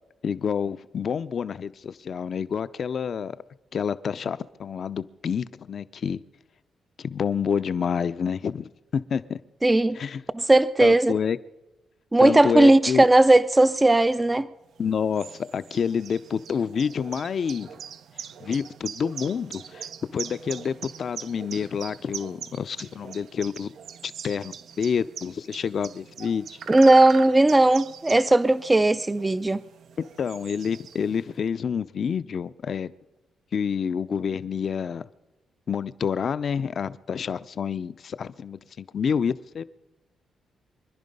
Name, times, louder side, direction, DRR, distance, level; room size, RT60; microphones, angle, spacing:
voice 1, 0.2-3.4 3.7-6.2 7.0-9.4 9.9-10.2 10.8-11.4 12.2-13.0 14.8-17.7 18.4-19.9 20.1-23.7 24.0-26.5 30.0-32.9 33.5-35.0 35.7-39.6, left 7 dB, 55° left, 0.6 m, -28 dB
voice 2, 9.6-10.0 10.3-11.1 12.1-14.5 26.7-29.6, right 2 dB, 20° right, 0.4 m, -17 dB
sound 1, 14.7-31.3, right 8 dB, 75° right, 0.6 m, -42 dB
25.5 x 10.5 x 5.4 m
cardioid pair, 80°, 0 cm